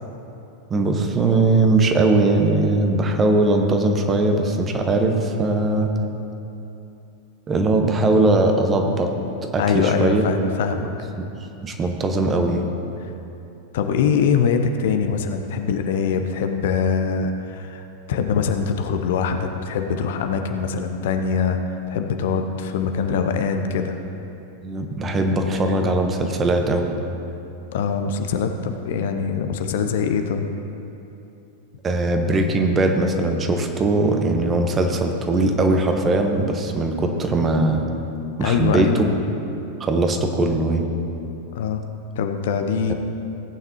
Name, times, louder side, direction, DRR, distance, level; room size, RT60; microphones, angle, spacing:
voice 1, 0.7-5.9 7.5-9.1 9.4-10.2 11.6-12.7 24.6-26.9 31.8-37.8 38.4-39.0 39.8-40.8 42.9-43.0, right 2 dB, 20° right, 4 dB, 1.2 m, -20 dB
voice 2, 9.6-10.9 13.0-13.1 13.7-21.6 21.9-24.0 27.7-30.5 38.4-39.0 41.5-41.8 42.2-42.9, left 6 dB, 55° left, 6 dB, 0.7 m, -23 dB
17.5 x 9.1 x 3.0 m, 2.9 s
figure-of-eight pair, 90°, 0 cm